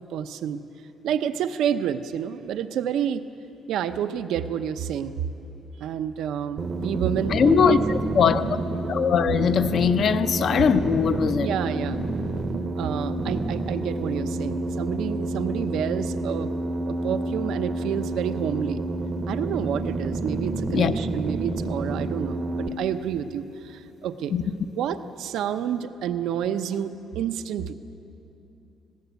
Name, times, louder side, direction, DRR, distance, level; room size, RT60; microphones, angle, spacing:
voice 1, 0.1-0.6 1.0-3.2 3.7-5.2 5.8-7.8 11.4-12.0 12.8-16.5 16.8-18.8 19.3-24.3 24.8-27.7, right 9 dB, 75° right, 0.8 m, -29 dB
sound 1, 6.6-22.7, right 2 dB, 30° right, 0.8 m, -29 dB
voice 2, 7.3-7.8 8.1-8.4 8.9-11.5 20.7-20.9 24.3-24.4, left 7 dB, 45° left, 0.7 m, -20 dB
19.5 x 17.0 x 8.2 m
cardioid pair, 145°, 0 cm